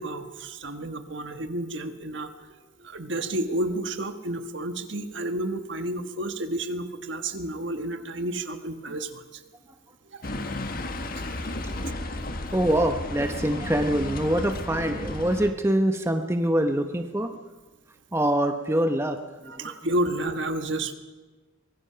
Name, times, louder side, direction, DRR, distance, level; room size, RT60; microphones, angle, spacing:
voice 1, 0.0-9.4 10.1-10.2 19.5-20.9, right 1 dB, 60° right, 8 dB, 1.5 m, -31 dB
sound 1, 10.2-15.5, left 1 dB, 45° left, 1.6 m, -33 dB
voice 2, 11.8-12.1 12.5-17.3 18.1-19.7, right 1 dB, 10° right, 6 dB, 0.9 m, -25 dB
24.0 x 20.5 x 5.8 m, 1.3 s
head